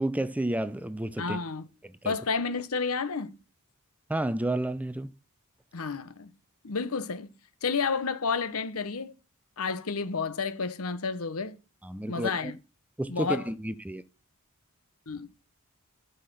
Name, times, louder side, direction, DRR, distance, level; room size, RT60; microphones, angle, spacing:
voice 1, 0.0-1.4 1.8-2.2 4.1-5.1 11.8-12.5 13.0-14.0, right 1 dB, 5° right, 0.5 m, -31 dB
voice 2, 1.2-1.7 2.0-3.4 5.7-6.3 6.6-7.3 7.6-9.1 9.6-11.6 12.1-12.6 13.1-13.4 15.1-15.3, left 5 dB, 80° left, 0.9 m, -30 dB
8.6 x 5.7 x 6.6 m
head